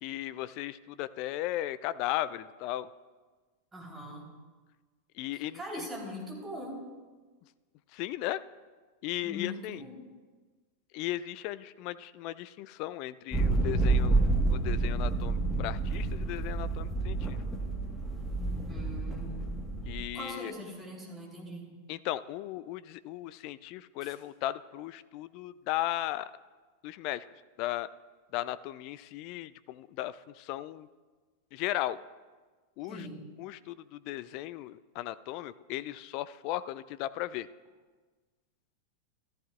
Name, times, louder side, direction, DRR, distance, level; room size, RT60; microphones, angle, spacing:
voice 1, 0.0-2.9 5.2-5.6 7.9-8.4 9.0-9.8 10.9-14.2 14.5-17.4 19.9-20.5 21.9-26.3 26.8-27.2 27.6-27.9 28.3-30.9 31.5-32.0 32.8-33.0 33.4-37.5, left 14 dB, 45° left, 16 dB, 0.3 m, -36 dB
voice 2, 3.7-4.3 5.3-6.8 9.2-10.1 18.7-19.6 20.1-21.7 24.0-24.2 32.8-33.2, left 1 dB, 15° right, -2 dB, 3.8 m, -41 dB
sound 1, 13.3-20.1, right 3 dB, 10° left, 1.5 m, -29 dB
14.0 x 14.0 x 2.5 m, 1.3 s
figure-of-eight pair, 90°, 0 cm